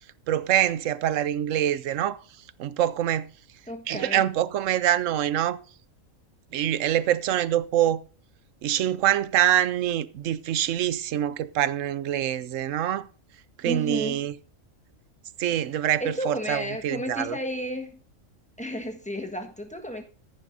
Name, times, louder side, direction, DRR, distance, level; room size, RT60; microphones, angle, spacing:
voice 1, 0.3-2.2 2.6-3.3 3.9-5.6 6.5-8.0 8.6-13.1 13.6-14.3 15.4-17.4, right 11 dB, 75° right, 1.0 m, -25 dB
voice 2, 3.7-4.2 13.6-14.2 16.0-18.0 18.6-20.0, equal, 5° left, 1.4 m, -32 dB
14.0 x 10.5 x 2.6 m
omnidirectional pair, 1.4 m